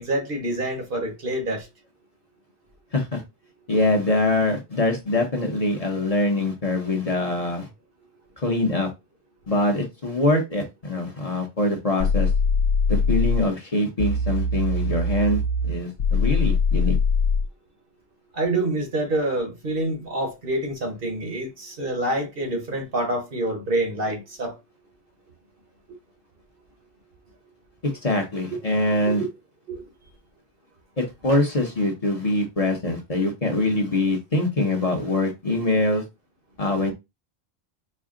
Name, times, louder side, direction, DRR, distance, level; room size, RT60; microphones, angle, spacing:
voice 1, 0.0-1.7 18.3-24.6 28.5-28.6 29.1-29.3 29.7-29.8 31.3-31.4, right 1 dB, 60° right, 1.2 m, -27 dB
voice 2, 3.7-7.7 8.4-8.9 9.5-12.3 12.9-15.4 15.7-17.0 27.8-29.2 31.0-36.0 36.6-36.9, left 2 dB, 40° left, 0.9 m, -23 dB
sound 1, 12.0-13.5 14.0-17.5, left 3 dB, 70° left, 0.8 m, -22 dB
4.3 x 2.1 x 3.7 m
omnidirectional pair, 1.0 m